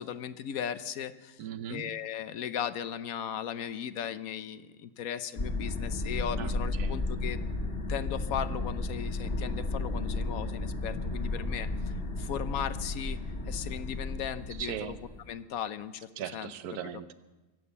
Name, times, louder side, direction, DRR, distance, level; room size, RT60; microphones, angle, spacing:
voice 1, 0.0-1.4 1.7-7.4 7.9-11.7 12.2-13.2 13.5-15.0 15.3-16.5, left 9 dB, 70° left, 13 dB, 1.1 m, -37 dB
voice 2, 1.4-2.0 6.4-7.0 14.6-15.0 16.2-17.1, right 9 dB, 80° right, 12 dB, 1.3 m, -39 dB
sound 1, 5.4-15.3, left 2 dB, 40° left, 1.9 m, -33 dB
sound 2, 7.2-14.7, left 2 dB, 85° left, 3.1 m, -53 dB
22.5 x 8.6 x 7.0 m, 1.2 s
omnidirectional pair, 1.6 m